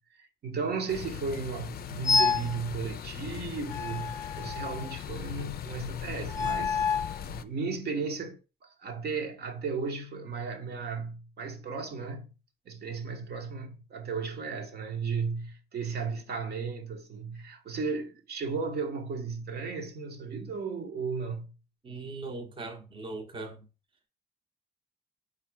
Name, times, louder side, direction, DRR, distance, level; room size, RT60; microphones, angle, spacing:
voice 1, 0.1-6.9 7.2-12.3 12.7-21.5, right 5 dB, 55° right, 0.9 m, -35 dB
sound 1, 0.9-7.4, left 9 dB, 50° left, 0.4 m, -39 dB
sound 2, 2.0-2.5 3.7-4.9 6.3-7.2, left 5 dB, 15° left, 0.9 m, -28 dB
voice 2, 21.8-23.6, right 3 dB, 25° right, 0.8 m, -39 dB
4.0 x 2.5 x 4.4 m
cardioid pair, 90°, 20 cm